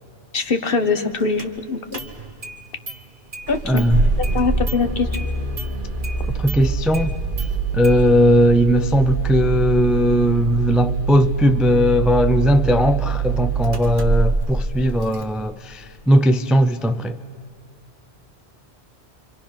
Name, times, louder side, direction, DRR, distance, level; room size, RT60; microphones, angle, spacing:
voice 1, 0.3-2.1 3.5-3.8 4.2-5.1, left 4 dB, 55° left, 1.4 m, -22 dB
Engine starting, 1.4-1.5 1.9-2.5 2.9-3.0 3.3-15.2, right 4 dB, 50° right, 1.7 m, -24 dB
voice 2, 3.7-4.0 6.4-7.1 7.7-17.2, equal, ahead, 0.4 m, -18 dB
29.0 x 25.0 x 6.0 m
omnidirectional pair, 1.1 m